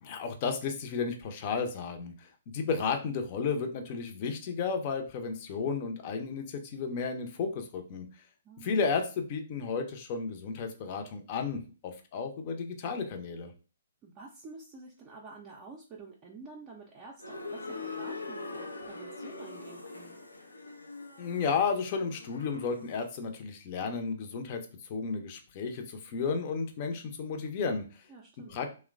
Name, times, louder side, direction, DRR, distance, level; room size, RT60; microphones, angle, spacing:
voice 1, 0.0-8.1 8.6-13.5 21.2-24.6 24.9-28.0 28.5-28.7, left 5 dB, 40° left, 5 dB, 0.6 m, -33 dB
voice 2, 8.4-8.8 14.0-20.2 28.1-28.6, right 4 dB, 25° right, -2 dB, 0.5 m, -49 dB
sound 1, 17.2-23.1, left 3 dB, 90° left, 0.5 m, -43 dB
3.0 x 2.1 x 2.4 m, 0.35 s
figure-of-eight pair, 125°, 0 cm